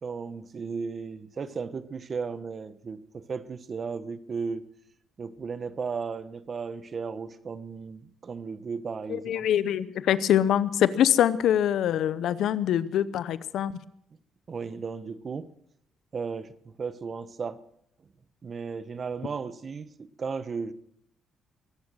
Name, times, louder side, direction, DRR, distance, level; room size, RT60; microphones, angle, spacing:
voice 1, 0.0-4.6 5.2-9.5 14.5-15.5 16.1-17.6 18.4-20.7, right 5 dB, 45° right, 14 dB, 1.1 m, -35 dB
voice 2, 9.1-13.8, left 10 dB, 75° left, 16 dB, 0.8 m, -24 dB
22.5 x 9.7 x 6.3 m, 0.73 s
cardioid pair, 90°, 0 cm